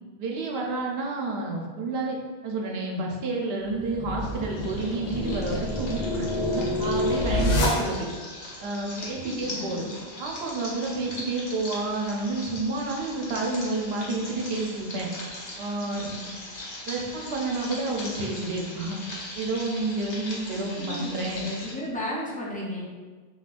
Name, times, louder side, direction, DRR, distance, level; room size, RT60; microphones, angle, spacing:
voice 1, 0.2-2.2 2.4-8.1 8.6-9.8 10.2-15.1 15.6-16.1 16.9-19.0 19.4-21.5, right 2 dB, 75° right, 0 dB, 0.8 m, -30 dB
sound 1, 3.7-8.3, left 1 dB, 80° left, 0.9 m, -27 dB
sound 2, 4.2-21.7, left 1 dB, 50° left, 0.7 m, -40 dB
voice 2, 9.0-9.9 15.8-16.3 20.4-22.8, equal, 10° left, -6 dB, 0.4 m, -35 dB
3.7 x 2.3 x 2.4 m, 1.4 s
omnidirectional pair, 1.1 m